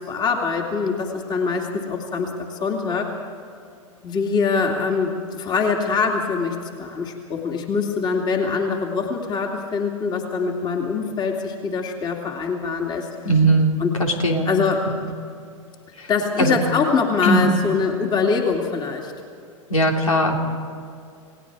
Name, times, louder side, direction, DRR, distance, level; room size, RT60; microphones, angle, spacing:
voice 1, 0.0-3.1 4.0-13.1 13.8-14.0 14.4-14.9 16.1-19.1, left 5 dB, 25° left, 2 dB, 2.6 m, -23 dB
voice 2, 13.2-14.5 14.9-15.0 16.0-16.1 16.4-16.6 17.2-17.5 19.7-20.4, right 1 dB, 85° left, 1 dB, 3.3 m, -19 dB
29.0 x 19.0 x 4.8 m, 2.4 s
hypercardioid pair, 105°, 17 cm